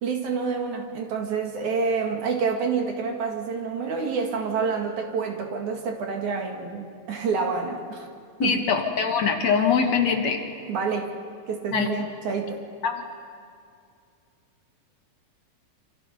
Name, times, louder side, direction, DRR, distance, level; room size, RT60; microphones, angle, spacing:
voice 1, 0.0-8.1 8.4-8.7 10.7-11.1 11.5-12.6, right 5 dB, 65° right, 3 dB, 3.4 m, -28 dB
voice 2, 8.4-10.4 11.7-11.9 12.8-13.0, left 6 dB, 60° left, 4 dB, 2.4 m, -23 dB
28.0 x 26.0 x 5.5 m, 2.3 s
omnidirectional pair, 3.9 m